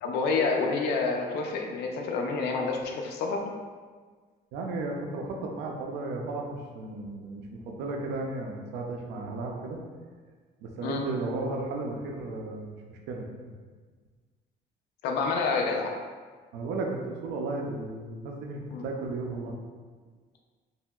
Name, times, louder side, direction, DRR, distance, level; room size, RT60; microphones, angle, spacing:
voice 1, 0.0-3.5 10.8-11.0 15.0-15.9 18.7-18.8, left 4 dB, 80° left, 2 dB, 0.5 m, -28 dB
voice 2, 4.5-9.8 10.6-13.2 16.5-19.5, right 2 dB, 90° right, 1 dB, 0.5 m, -34 dB
3.1 x 2.8 x 2.2 m, 1.5 s
cardioid pair, 110°, 17 cm